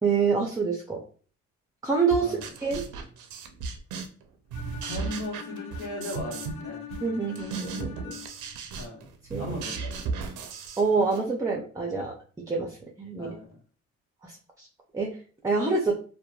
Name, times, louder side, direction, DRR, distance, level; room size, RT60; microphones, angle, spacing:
voice 1, 0.0-1.0 1.8-2.8 7.0-8.2 9.3-9.5 10.8-12.1 12.5-13.3 14.2-14.7 14.9-15.1 15.4-15.9, right 4 dB, 10° right, 0 dB, 0.4 m, -26 dB
sound 1, 2.1-4.2 4.5-6.6 6.9-11.3, right 5 dB, 90° right, 0.5 m, -36 dB
Bowed string instrument, 4.5-8.5, left 9 dB, 50° left, 0.4 m, -42 dB
voice 2, 4.8-6.9 8.8-9.1 9.4-10.4 13.2-13.5, left 1 dB, 90° left, -3 dB, 1.0 m, -38 dB
2.9 x 2.2 x 2.2 m, 0.41 s
cardioid pair, 90°, 30 cm